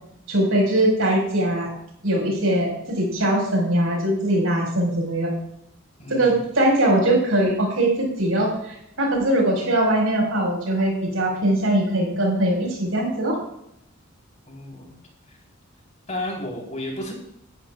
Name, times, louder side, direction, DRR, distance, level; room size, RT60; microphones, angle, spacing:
voice 1, 0.3-1.7 2.0-5.3 6.1-13.4, right 1 dB, 80° right, 0 dB, 5.2 m, -21 dB
voice 2, 6.0-6.3 14.5-15.0 16.1-17.1, left 1 dB, 35° left, -1 dB, 3.9 m, -32 dB
19.0 x 11.0 x 2.4 m, 0.76 s
head